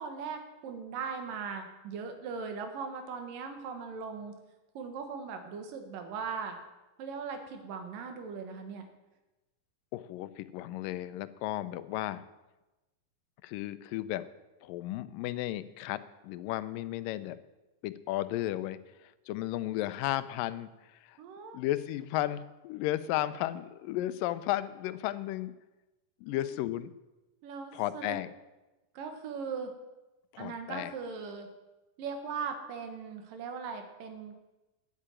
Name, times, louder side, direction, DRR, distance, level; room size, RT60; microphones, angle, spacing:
voice 1, 0.0-4.4 4.7-6.6 7.0-8.9 21.2-21.6 26.3-26.5 27.4-28.2 28.9-29.7 30.4-31.5 32.0-34.3, right 5 dB, 85° right, 6 dB, 3.1 m, -39 dB
voice 2, 9.9-12.2 13.4-14.3 14.6-17.4 17.8-21.2 21.5-25.5 26.2-26.9 27.7-28.3 30.3-30.9, left 14 dB, 85° left, 14 dB, 2.3 m, -34 dB
9.9 x 8.4 x 8.9 m, 1.1 s
omnidirectional pair, 3.8 m